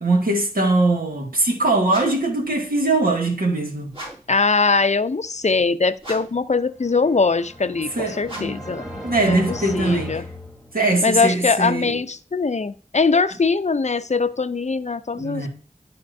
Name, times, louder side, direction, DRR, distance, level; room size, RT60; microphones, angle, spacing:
voice 1, 0.0-3.9 8.0-10.2 10.7-12.0 15.1-15.5, right 2 dB, 75° right, 1.9 m, -21 dB
sound 1, 1.9-2.3 3.9-4.4 6.0-6.5 8.2-8.7, right 1 dB, 35° right, 2.5 m, -37 dB
voice 2, 4.3-8.8 9.2-10.2 11.0-15.5, left 4 dB, 50° left, 0.5 m, -21 dB
sound 2, 6.7-11.1, left 1 dB, 5° right, 2.0 m, -36 dB
11.5 x 4.3 x 2.6 m
wide cardioid pair, 45°, 15 cm